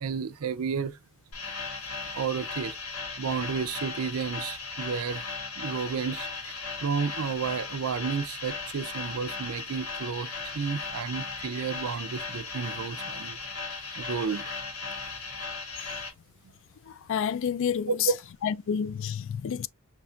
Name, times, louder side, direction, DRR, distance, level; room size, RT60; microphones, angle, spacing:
voice 1, 0.0-1.0 2.1-2.8 3.2-5.3 5.6-10.3 10.5-13.4 14.0-14.5 17.9-18.2, right 6 dB, 70° right, 0.5 m, -31 dB
sound 1, 1.3-16.1, left 4 dB, 85° left, 2.3 m, -37 dB
voice 2, 17.1-17.9 18.4-19.7, left 7 dB, 60° left, 0.3 m, -29 dB
5.5 x 3.2 x 2.3 m
head